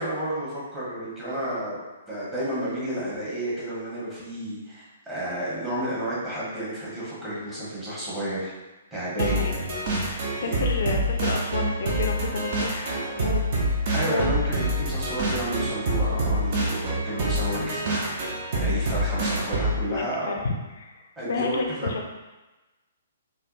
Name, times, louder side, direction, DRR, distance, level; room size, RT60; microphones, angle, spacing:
voice 1, 0.0-1.8 2.1-8.5 8.9-9.5 10.4-10.6 13.9-18.1 18.6-20.3 21.2-21.9, right 1 dB, 15° right, -10 dB, 1.1 m, -31 dB
voice 2, 9.2-13.4 14.0-14.3 19.9-22.1, left 4 dB, 55° left, 2 dB, 0.3 m, -31 dB
sound 1, 9.2-19.9, right 1 dB, 45° right, 0.6 m, -26 dB
3.3 x 2.2 x 2.4 m, 1.1 s
figure-of-eight pair, 120°, 0 cm